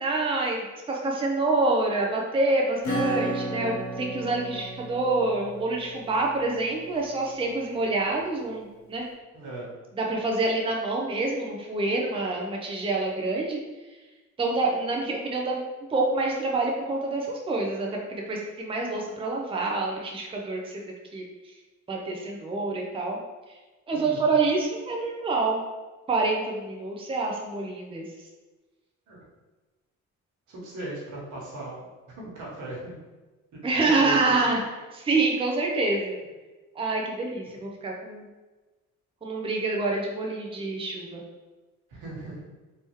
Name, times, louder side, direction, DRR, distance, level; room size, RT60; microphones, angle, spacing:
voice 1, 0.0-9.0 10.0-13.6 14.4-15.6 15.9-20.8 21.1-21.2 21.9-23.2 23.9-25.6 26.1-28.1 33.6-34.6 34.9-36.1 36.8-38.2 39.2-41.2, right 3 dB, 20° right, -1 dB, 0.6 m, -27 dB
Acoustic guitar / Strum, 2.8-7.1, right 1 dB, 65° left, 1.0 m, -33 dB
voice 2, 9.3-9.7 23.9-24.3 29.1-29.2 30.5-31.9 32.2-32.9 33.8-34.5 41.9-42.4, right 2 dB, 80° right, -5 dB, 1.4 m, -37 dB
3.4 x 2.9 x 3.1 m, 1.2 s
cardioid pair, 90°, 30 cm